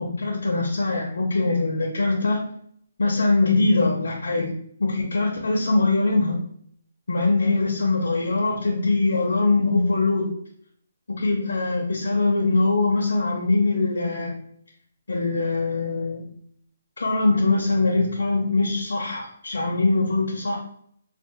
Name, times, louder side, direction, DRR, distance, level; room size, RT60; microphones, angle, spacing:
voice 1, 0.0-2.4 3.0-4.5 4.8-6.4 7.1-10.3 11.1-14.4 15.1-16.2 17.0-20.6, left 3 dB, 85° left, -1 dB, 0.6 m, -22 dB
2.6 x 2.0 x 3.9 m, 0.67 s
hypercardioid pair, 175°, 0 cm